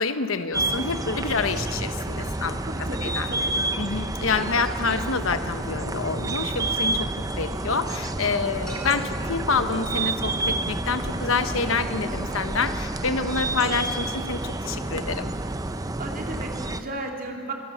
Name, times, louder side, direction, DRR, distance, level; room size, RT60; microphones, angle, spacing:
voice 1, 0.0-2.7 3.0-3.3 3.8-15.3, left 4 dB, 70° left, 10 dB, 1.0 m, -27 dB
sound 1, 0.5-16.8, right 2 dB, 15° right, 0.7 m, -29 dB
voice 2, 2.6-3.6 4.3-4.6 16.0-17.5, right 2 dB, 45° right, 1 dB, 2.7 m, -35 dB
sound 2, 8.7-10.5, right 1 dB, 5° left, 5.0 m, -43 dB
25.0 x 17.0 x 7.2 m, 2.5 s
head